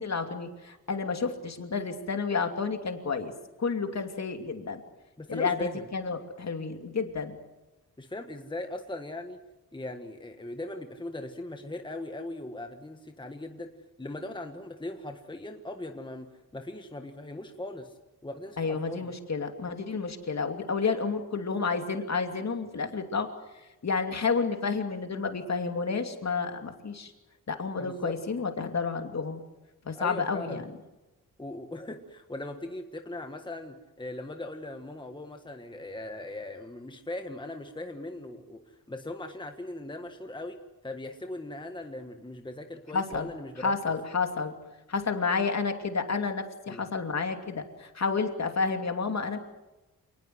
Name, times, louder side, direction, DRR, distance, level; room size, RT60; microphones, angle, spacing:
voice 1, 0.0-3.3 3.6-4.8 5.3-7.4 18.6-23.3 23.8-27.1 27.5-29.4 29.8-30.6 42.9-43.3 43.6-44.5 44.9-49.4, left 4 dB, 45° left, 6 dB, 2.7 m, -30 dB
voice 2, 5.2-5.9 8.0-9.4 9.7-13.7 14.0-16.3 16.5-18.0 18.2-19.1 27.8-28.1 29.9-30.7 31.4-38.6 38.9-40.6 40.8-43.7 46.7-46.9, left 2 dB, 15° left, 5 dB, 1.5 m, -39 dB
28.0 x 20.0 x 7.8 m, 1.1 s
wide cardioid pair, 175°, 36 cm